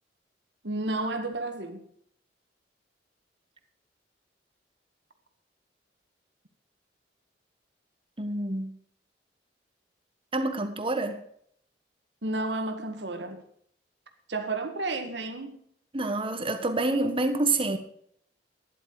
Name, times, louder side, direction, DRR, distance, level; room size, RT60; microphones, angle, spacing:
voice 1, 0.6-1.8 12.2-13.4 14.3-15.6, right 2 dB, 75° right, 1.8 m, -32 dB
voice 2, 8.2-8.8 10.3-11.2 15.9-17.8, right 2 dB, 30° right, 1.3 m, -27 dB
12.0 x 11.0 x 4.8 m
head